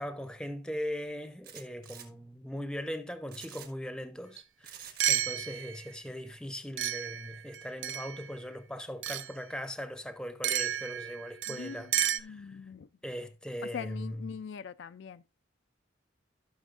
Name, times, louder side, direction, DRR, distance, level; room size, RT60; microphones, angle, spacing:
voice 1, 0.0-12.6 13.0-14.4, equal, 5° left, 0.7 m, -40 dB
sound 1, 1.4-2.1 3.3-3.7 4.6-5.2, right 9 dB, 55° right, 1.6 m, -47 dB
sound 2, 4.4-4.5 5.0-5.9 6.8-8.3 9.0-9.3 10.4-12.2, right 11 dB, 70° right, 0.5 m, -32 dB
voice 2, 11.5-11.8 12.1-12.9 13.6-15.2, left 6 dB, 70° left, 0.4 m, -42 dB
14.5 x 6.2 x 2.5 m
head